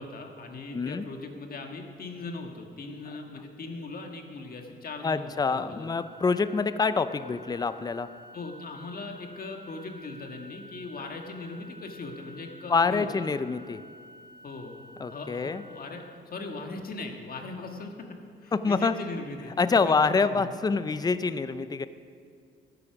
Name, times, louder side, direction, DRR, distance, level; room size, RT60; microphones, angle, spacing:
voice 1, 0.0-6.0 8.3-13.3 14.4-14.7 15.1-16.0 16.3-17.9 18.4-20.5, left 3 dB, 50° left, 3 dB, 1.7 m, -39 dB
voice 2, 0.7-1.0 5.0-8.1 12.7-13.8 15.0-15.6 18.5-18.9 19.6-21.9, left 4 dB, 20° left, 13 dB, 0.5 m, -26 dB
Organ, 5.7-16.8, equal, 20° right, 3.9 m, -51 dB
12.5 x 9.9 x 6.0 m, 2.2 s
cardioid pair, 90°, 20 cm